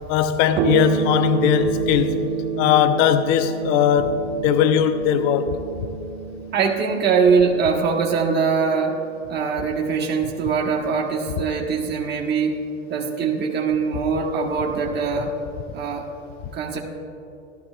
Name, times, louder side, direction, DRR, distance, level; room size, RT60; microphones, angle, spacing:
voice 1, 0.1-2.3 2.6-5.6, left 9 dB, 55° left, 10 dB, 0.7 m, -19 dB
sound 1, 0.6-9.4, right 6 dB, 70° right, 1.4 m, -29 dB
voice 2, 6.5-9.0 9.3-12.6 12.9-15.3 15.7-16.0 16.5-16.8, right 5 dB, 30° right, -1 dB, 1.2 m, -22 dB
15.0 x 12.0 x 2.4 m, 2.8 s
hypercardioid pair, 105°, 36 cm